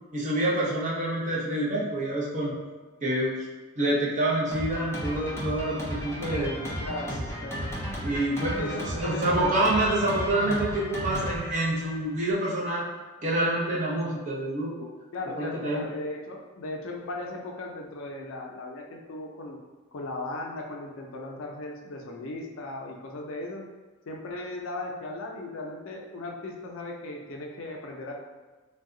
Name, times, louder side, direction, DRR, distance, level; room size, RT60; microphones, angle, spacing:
voice 1, 0.1-2.5 3.0-3.3 3.8-6.7 8.0-12.8 13.2-14.9 15.4-15.8, right 1 dB, 35° right, -5 dB, 0.6 m, -27 dB
Drum kit, 4.5-12.3, equal, 15° left, 0.5 m, -34 dB
voice 2, 6.8-7.7 8.6-9.5 15.1-19.6 19.9-23.6 24.1-28.1, left 2 dB, 70° left, 0 dB, 0.5 m, -37 dB
2.7 x 2.2 x 3.6 m, 1.3 s
head